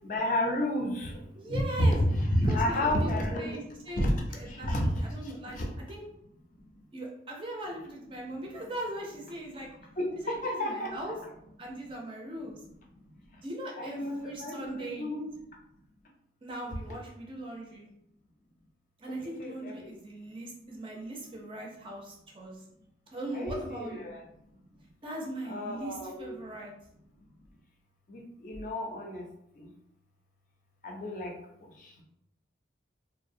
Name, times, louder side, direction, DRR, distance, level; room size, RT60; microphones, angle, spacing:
voice 1, 0.0-1.1 1.5-3.6 4.0-4.1 4.5-4.9 5.6-5.7 10.0-10.9 13.8-15.3 19.1-19.9 23.3-24.2 25.4-26.4 28.1-29.2 30.8-31.3, left 1 dB, 40° left, 1 dB, 0.4 m, -30 dB
voice 2, 1.3-2.0 2.4-3.1 3.4-5.6 5.9-6.0 6.9-9.8 10.2-11.2 11.6-12.6 13.4-15.2 16.4-17.9 19.0-22.6 23.1-24.1 25.0-26.7, right 1 dB, 25° right, -1 dB, 0.4 m, -40 dB
2.5 x 2.0 x 2.5 m, 0.78 s
head